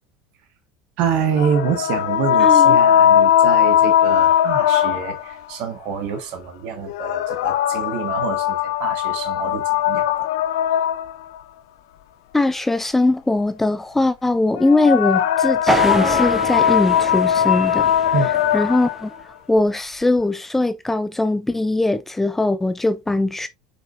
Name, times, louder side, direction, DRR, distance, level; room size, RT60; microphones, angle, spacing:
voice 1, 1.0-10.3 18.1-18.3, right 7 dB, 60° right, 1.7 m, -26 dB
sound 1, 1.4-5.3 6.9-11.4 14.6-19.0, left 10 dB, 75° left, 0.6 m, -19 dB
voice 2, 2.4-2.8 12.3-17.9 18.5-19.1 19.5-23.5, left 2 dB, 10° left, 0.7 m, -20 dB
sound 2, 15.7-19.2, right 2 dB, 10° right, 1.9 m, -26 dB
7.5 x 5.2 x 2.6 m
hypercardioid pair, 80°, 2 cm